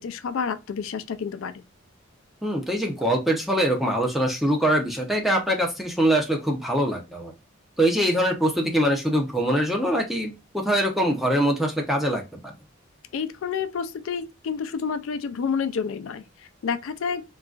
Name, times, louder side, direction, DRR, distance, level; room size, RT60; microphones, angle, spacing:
voice 1, 0.0-1.6 13.1-17.2, left 6 dB, 75° left, 0.4 m, -29 dB
voice 2, 2.4-7.3 7.8-12.5, right 1 dB, ahead, 0.6 m, -23 dB
3.8 x 2.3 x 2.3 m
head